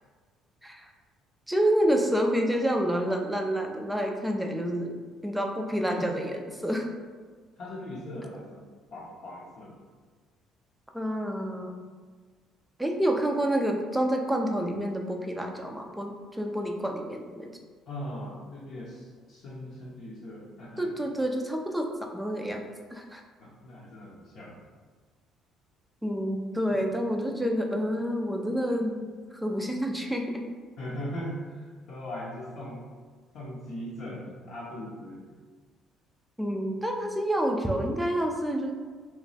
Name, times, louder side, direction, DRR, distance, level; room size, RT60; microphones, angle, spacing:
voice 1, 1.5-5.0 5.2-6.9 10.9-11.7 12.8-17.5 20.8-22.6 22.9-23.2 26.0-30.4 36.4-38.7, equal, 5° right, 2 dB, 0.4 m, -28 dB
voice 2, 5.6-6.1 7.6-8.7 8.9-9.8 17.9-20.9 23.4-24.6 30.8-32.9 33.3-35.2, equal, 55° left, -6 dB, 0.7 m, -39 dB
2.9 x 2.2 x 4.0 m, 1.5 s
cardioid pair, 115°, 0 cm